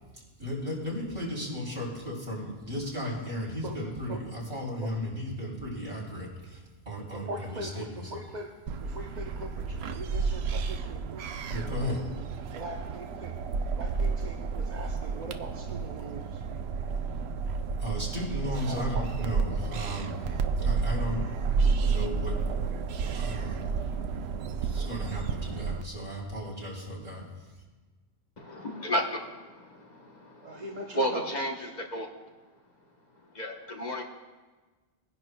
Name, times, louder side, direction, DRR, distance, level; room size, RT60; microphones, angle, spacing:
voice 1, 0.4-8.1 11.4-12.0 17.8-21.3 21.8-22.5 22.9-23.7 24.5-27.6, equal, 60° right, -4 dB, 3.4 m, -35 dB
voice 2, 7.1-8.5 8.8-11.5 11.8-13.4 13.7-16.4 18.6-19.0 19.5-20.0 30.4-31.7, right 2 dB, 45° right, 0 dB, 0.9 m, -41 dB
sound 1, 8.7-25.8, right 5 dB, 90° right, 0.9 m, -31 dB
voice 3, 28.4-30.6 30.9-32.1 33.2-34.0, equal, 45° left, 1 dB, 1.1 m, -33 dB
21.5 x 10.5 x 2.2 m, 1.3 s
omnidirectional pair, 1.0 m